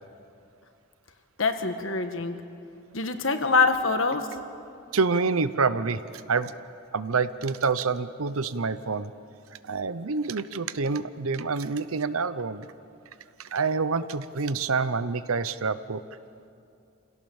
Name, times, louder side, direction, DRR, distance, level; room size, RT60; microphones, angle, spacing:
voice 1, 1.4-2.4 2.9-4.3, left 4 dB, 70° left, 7 dB, 1.5 m, -24 dB
voice 2, 4.9-6.0 6.3-6.5 6.9-9.1 9.7-12.7 13.4-16.0, right 4 dB, 90° right, 14 dB, 0.8 m, -27 dB
27.5 x 17.0 x 7.2 m, 2.6 s
head